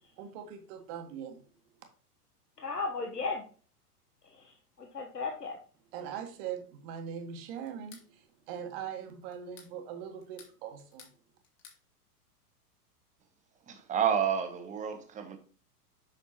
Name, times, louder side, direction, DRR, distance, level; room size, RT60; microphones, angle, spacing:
voice 1, 0.2-1.4 5.9-11.1, right 8 dB, 40° right, 1.5 m, -41 dB
voice 2, 2.6-3.5 4.2-5.6, left 4 dB, 85° left, 1.1 m, -36 dB
sound 1, 7.7-8.1 9.3-9.7 10.2-11.2 11.4-11.8, left 7 dB, 35° left, 2.2 m, -54 dB
voice 3, 13.6-15.4, right 8 dB, 15° right, 1.0 m, -30 dB
7.6 x 6.0 x 2.9 m
figure-of-eight pair, 100°, 46 cm